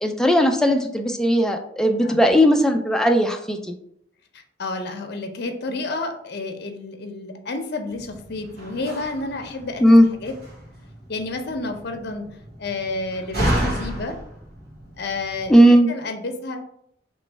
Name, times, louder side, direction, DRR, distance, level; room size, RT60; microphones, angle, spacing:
voice 1, 0.0-3.7 9.8-10.1 15.5-15.9, equal, 5° left, 4 dB, 0.4 m, -16 dB
voice 2, 2.0-2.4 4.6-9.9 10.2-10.3 11.1-12.3 12.6-14.2 15.0-15.5 15.9-16.6, left 3 dB, 60° left, 6 dB, 0.7 m, -30 dB
Slam, 7.9-15.5, equal, 60° right, 1.5 m, -31 dB
3.1 x 3.0 x 4.5 m, 0.71 s
head